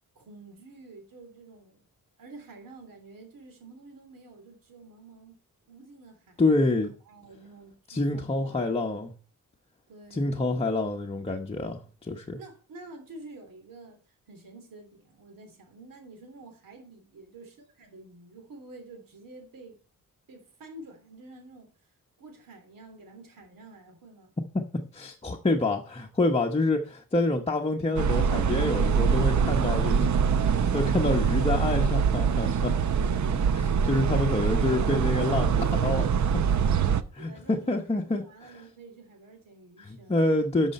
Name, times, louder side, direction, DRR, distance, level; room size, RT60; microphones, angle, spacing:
voice 1, 0.1-1.9 2.2-5.4 5.7-6.8 7.1-8.8 9.9-10.4 12.4-19.8 20.3-24.3 31.1-31.5 34.6-34.8 35.3-40.2, right 2 dB, 80° right, 3.3 m, -48 dB
voice 2, 6.4-6.9 7.9-9.1 10.1-11.8 12.1-12.4 24.7-30.1 30.5-32.7 33.3-35.5 35.8-36.0 37.2-38.6 39.8-40.7, left 2 dB, 20° left, 0.9 m, -27 dB
sound 1, 28.0-37.0, right 6 dB, 60° right, 0.8 m, -24 dB
12.5 x 6.4 x 4.2 m
wide cardioid pair, 180°, 33 cm